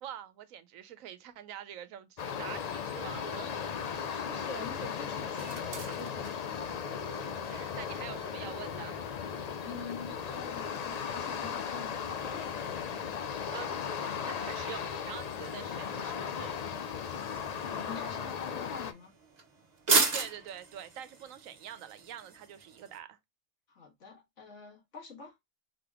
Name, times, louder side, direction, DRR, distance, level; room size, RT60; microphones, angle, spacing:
voice 1, 0.0-3.6 6.7-9.0 11.8-11.9 13.5-16.5 20.1-23.2, right 10 dB, 85° right, 1.1 m, -46 dB
sound 1, 2.2-18.9, left 7 dB, 80° left, 0.3 m, -37 dB
sound 2, 3.4-23.0, right 4 dB, 35° right, 1.0 m, -39 dB
voice 2, 3.8-6.7 9.6-12.9 17.6-19.1 23.7-25.4, left 5 dB, 65° left, 1.9 m, -46 dB
3.9 x 3.4 x 3.5 m
omnidirectional pair, 1.4 m